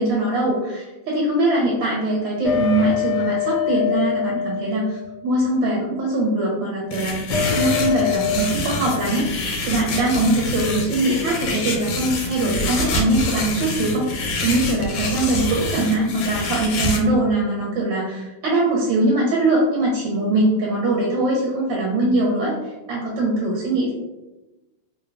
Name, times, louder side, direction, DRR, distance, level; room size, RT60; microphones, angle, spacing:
voice 1, 0.0-7.3 7.5-14.1 14.4-23.9, right 1 dB, 75° right, -4 dB, 1.4 m, -22 dB
sound 1, 2.4-5.4 7.3-8.4, left 8 dB, 75° left, 1.0 m, -24 dB
sound 2, 6.9-17.0, left 2 dB, 90° left, 1.4 m, -27 dB
3.3 x 2.2 x 2.4 m, 1.1 s
omnidirectional pair, 2.1 m